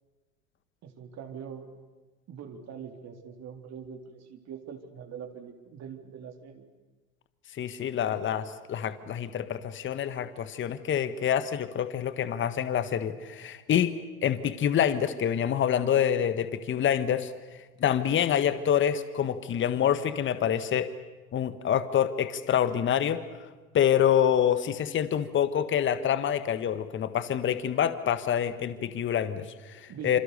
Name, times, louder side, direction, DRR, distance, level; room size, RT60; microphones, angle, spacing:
voice 1, 0.8-1.7 2.3-6.6 29.9-30.2, right 7 dB, 40° right, 5 dB, 3.5 m, -43 dB
voice 2, 7.5-17.3 17.8-20.9 21.3-23.2 23.7-30.2, left 9 dB, 30° left, 12 dB, 1.5 m, -26 dB
27.5 x 27.5 x 6.8 m, 1.2 s
hypercardioid pair, 85°, 42 cm